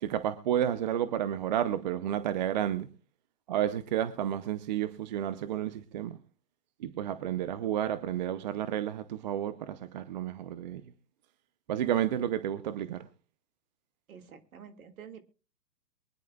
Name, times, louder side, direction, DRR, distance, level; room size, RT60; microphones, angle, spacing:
voice 1, 0.0-2.9 3.5-6.2 6.8-10.8 11.7-13.1, right 10 dB, 30° right, 0.6 m, -31 dB
voice 2, 14.1-15.2, right 7 dB, 55° right, 2.1 m, -48 dB
23.5 x 10.5 x 2.3 m
figure-of-eight pair, 130°, 49 cm